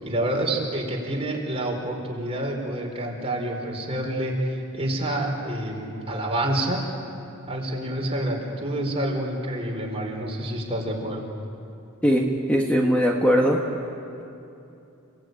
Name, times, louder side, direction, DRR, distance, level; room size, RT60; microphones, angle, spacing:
voice 1, 0.0-6.8 7.5-11.2, right 1 dB, 30° right, 0 dB, 4.4 m, -28 dB
voice 2, 12.0-13.6, equal, 5° left, -1 dB, 1.6 m, -20 dB
30.0 x 18.0 x 9.2 m, 2.7 s
head